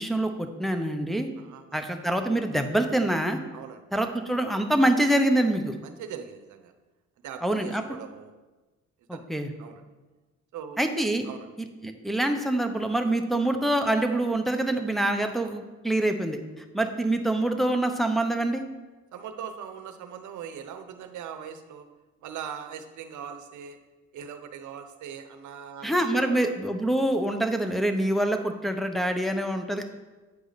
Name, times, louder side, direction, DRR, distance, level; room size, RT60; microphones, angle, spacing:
voice 1, 0.0-1.3 1.7-3.4 3.9-5.7 7.4-7.8 9.1-9.5 10.8-11.3 11.8-16.4 16.7-18.6 25.8-29.8, right 1 dB, ahead, 4 dB, 0.7 m, -25 dB
voice 2, 1.4-1.9 3.5-3.8 5.8-6.7 7.2-8.3 9.1-9.3 9.6-9.8 10.5-10.8 11.2-11.5 19.1-21.9 22.2-23.8 24.1-26.5, right 8 dB, 75° right, 9 dB, 0.8 m, -40 dB
8.7 x 5.0 x 4.0 m, 1.2 s
cardioid pair, 90°, 30 cm